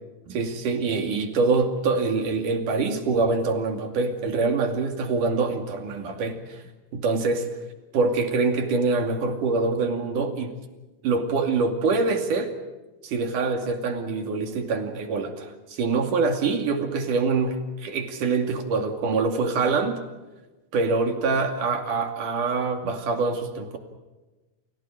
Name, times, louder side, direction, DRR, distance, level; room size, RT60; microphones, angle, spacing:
voice 1, 0.3-6.6 6.9-7.5 7.9-10.5 11.0-12.5 13.0-20.0 20.7-23.8, right 4 dB, 85° right, 5 dB, 4.2 m, -25 dB
29.5 x 28.0 x 5.1 m, 1.1 s
omnidirectional pair, 3.6 m